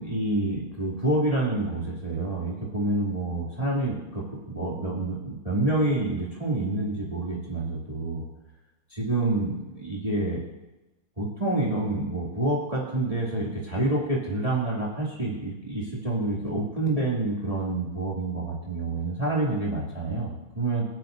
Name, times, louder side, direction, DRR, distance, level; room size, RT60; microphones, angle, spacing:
voice 1, 0.0-8.3 8.9-10.4 11.2-20.8, right 2 dB, 15° right, -5 dB, 2.6 m, -28 dB
27.0 x 10.5 x 2.7 m, 1.0 s
omnidirectional pair, 2.4 m